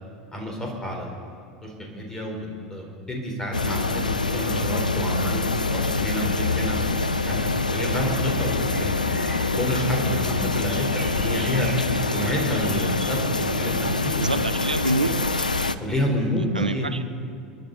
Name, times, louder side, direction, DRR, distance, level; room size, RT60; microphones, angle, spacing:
voice 1, 0.3-1.2 1.6-6.8 7.3-7.4 7.7-11.7 12.1-14.2 15.8-16.9, equal, 15° left, 0 dB, 4.2 m, -29 dB
sound 1, 3.5-15.8, left 3 dB, 85° left, 0.5 m, -25 dB
sound 2, 6.2-13.2, right 2 dB, 5° right, 3.3 m, -43 dB
voice 2, 14.2-15.6 16.5-17.1, right 2 dB, 90° right, 11 dB, 0.6 m, -27 dB
28.5 x 10.5 x 4.1 m, 2.3 s
figure-of-eight pair, 80°, 4 cm